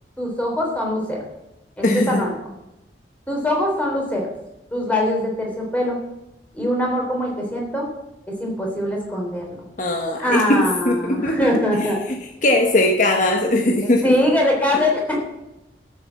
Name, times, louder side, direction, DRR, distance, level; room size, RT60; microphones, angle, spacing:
voice 1, 0.2-1.2 1.8-2.3 3.3-4.3 4.7-6.0 6.5-7.9 8.3-9.6 10.2-12.0 13.8-15.2, left 1 dB, 10° left, -1 dB, 3.5 m, -22 dB
voice 2, 1.8-2.2 9.8-11.5 12.4-14.1, left 1 dB, 45° left, 2 dB, 1.3 m, -19 dB
13.5 x 7.0 x 7.4 m, 0.90 s
head